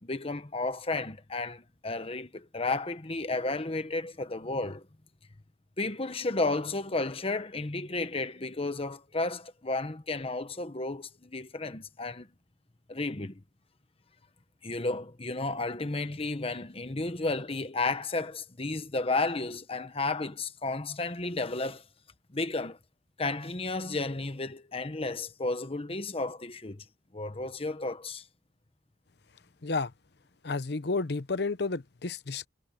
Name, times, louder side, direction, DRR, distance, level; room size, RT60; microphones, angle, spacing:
voice 1, 0.0-4.9 5.8-12.3 12.9-13.4 14.6-21.8 22.3-22.8 23.2-26.8 27.1-28.2, left 3 dB, 35° left, 1.2 m, -32 dB
voice 2, 30.4-32.5, left 3 dB, 65° left, 0.8 m, -31 dB
head